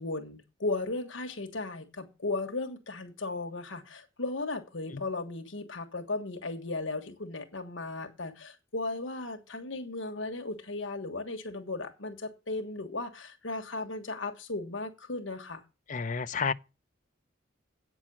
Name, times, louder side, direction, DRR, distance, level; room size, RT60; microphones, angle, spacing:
voice 1, 0.0-15.6, left 2 dB, 80° left, 1.4 m, -36 dB
voice 2, 15.9-16.5, left 5 dB, 40° left, 0.5 m, -30 dB
8.6 x 6.2 x 7.4 m
head